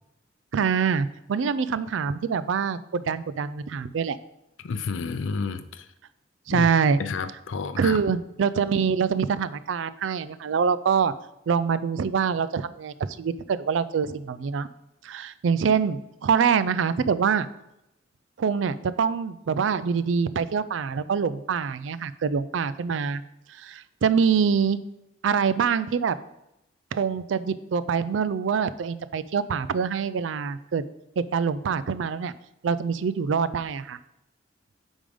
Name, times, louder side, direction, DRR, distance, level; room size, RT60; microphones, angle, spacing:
voice 1, 0.5-4.2 6.5-7.0 7.8-11.1 11.5-14.7 15.0-17.5 18.4-23.2 23.5-24.8 25.2-26.2 26.9-30.8 31.2-32.3 32.6-34.0, right 6 dB, 75° right, 15 dB, 0.4 m, -25 dB
voice 2, 4.6-5.8 6.5-6.7 7.0-8.0, left 5 dB, 80° left, 11 dB, 0.5 m, -30 dB
8.6 x 3.6 x 5.0 m, 0.86 s
head